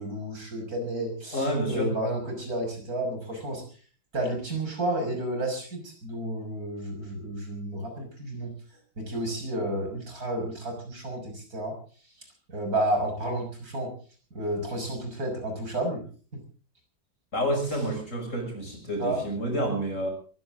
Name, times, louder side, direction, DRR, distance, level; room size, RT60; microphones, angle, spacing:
voice 1, 0.0-3.6 4.1-8.5 9.0-11.8 12.5-13.9 14.3-16.0 16.3-16.4 19.0-19.2, right 1 dB, 45° right, 4 dB, 6.6 m, -31 dB
voice 2, 1.3-1.9 17.3-20.1, equal, 40° left, 4 dB, 7.2 m, -29 dB
23.5 x 16.0 x 3.8 m, 0.41 s
omnidirectional pair, 2.1 m